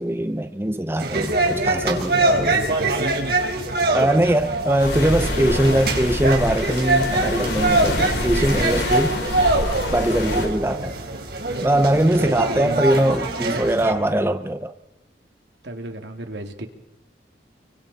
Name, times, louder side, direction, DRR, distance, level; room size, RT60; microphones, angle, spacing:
voice 1, 0.0-2.5 3.9-9.2 9.9-11.0 11.6-14.7, right 1 dB, 15° right, 0.8 m, -21 dB
sound 1, 1.0-13.9, right 2 dB, 60° right, 4.4 m, -24 dB
voice 2, 2.3-3.4 11.9-12.9 13.4-14.2 15.6-16.7, right 1 dB, 80° right, 2.6 m, -33 dB
sound 2, 4.8-10.5, left 1 dB, 80° left, 6.4 m, -26 dB
30.0 x 24.5 x 4.2 m
head